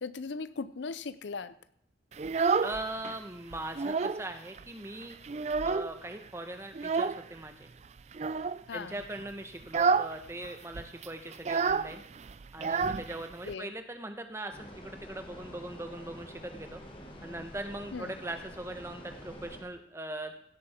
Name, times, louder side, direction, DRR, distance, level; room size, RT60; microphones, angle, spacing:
voice 1, 0.0-1.5 8.7-9.0 13.4-13.7 17.9-18.2, left 4 dB, 75° left, 14 dB, 0.6 m, -38 dB
Child speech kid speaking, 2.1-3.2 3.5-4.3 4.6-4.7 5.0-6.1 6.7-7.2 8.1-8.6 9.0-9.2 9.6-10.2 10.4-10.5 10.7-13.5, right 5 dB, 35° right, 0.3 m, -29 dB
voice 2, 2.6-5.2 5.6-7.7 8.7-12.0 12.5-16.8 17.2-20.3, right 1 dB, 15° right, 6 dB, 1.0 m, -40 dB
sound 1, 14.5-19.6, equal, 30° left, 1.6 m, -47 dB
16.5 x 7.6 x 4.4 m, 0.68 s
head